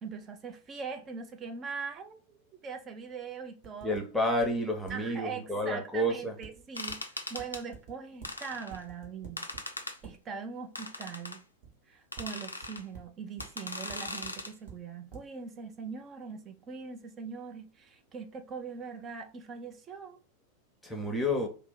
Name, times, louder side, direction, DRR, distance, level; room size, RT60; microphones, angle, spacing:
voice 1, 0.0-4.0 4.9-9.5 10.0-11.4 11.9-20.2, right 5 dB, 25° right, 0.4 m, -41 dB
sound 1, 3.6-4.0 4.4-4.5 4.9-5.0 6.4-7.0 7.4-7.9 8.2-8.3 8.7-9.6 10.0-10.1 11.6-11.8 12.1-12.3 12.6-13.0 13.4-13.5 13.9-14.7 15.1-15.2, right 7 dB, 50° right, 1.0 m, -47 dB
voice 2, 3.8-6.3 20.8-21.5, equal, ahead, 0.8 m, -30 dB
sound 2, 6.7-7.6 8.2-8.8 9.4-10.0 10.7-11.4 12.1-12.8 13.4-14.5, left 2 dB, 80° left, 0.4 m, -39 dB
2.6 x 2.0 x 3.8 m
figure-of-eight pair, 90°, 0 cm